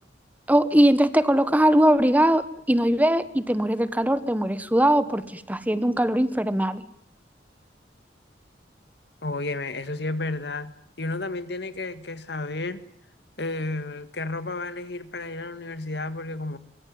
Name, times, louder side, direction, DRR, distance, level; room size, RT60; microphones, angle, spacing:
voice 1, 0.5-6.8, right 1 dB, 10° right, 13 dB, 1.2 m, -21 dB
voice 2, 9.2-12.8 13.4-16.6, left 2 dB, 65° left, 12 dB, 1.8 m, -32 dB
24.0 x 23.5 x 9.5 m, 0.69 s
head